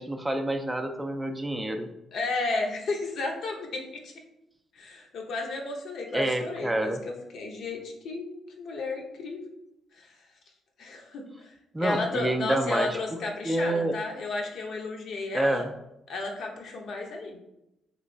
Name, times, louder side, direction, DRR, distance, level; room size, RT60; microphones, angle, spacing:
voice 1, 0.0-1.9 6.1-7.0 11.7-13.0 13.4-13.9 15.3-15.7, right 1 dB, 15° right, 4 dB, 0.3 m, -28 dB
voice 2, 2.1-4.1 4.7-8.3 8.6-9.4 10.0-10.2 10.8-11.5 11.8-15.7 16.1-17.4, left 3 dB, 65° left, 1 dB, 0.7 m, -33 dB
3.1 x 2.9 x 2.6 m, 0.86 s
cardioid pair, 90°, 0 cm